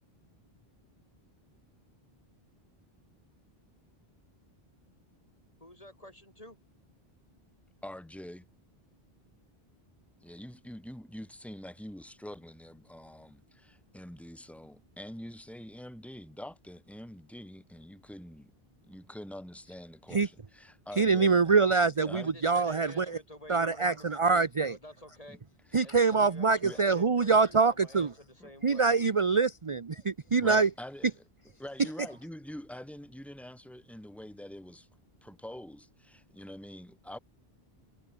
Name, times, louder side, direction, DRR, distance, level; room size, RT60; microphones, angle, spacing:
voice 1, 5.6-6.6 22.2-25.4 25.8-28.9, left 1 dB, 35° left, 6.4 m, -50 dB
voice 2, 7.8-8.5 10.2-18.5 18.8-21.4 22.0-22.3 25.3-25.4 25.8-25.9 26.6-26.8 28.4-28.5 30.4-31.1 31.6-34.9 35.2-37.2, left 1 dB, ahead, 3.6 m, -45 dB
voice 3, 21.0-23.2 23.5-24.8 25.7-28.1 28.6-30.7, right 4 dB, 35° right, 0.8 m, -25 dB
omnidirectional pair, 1.0 m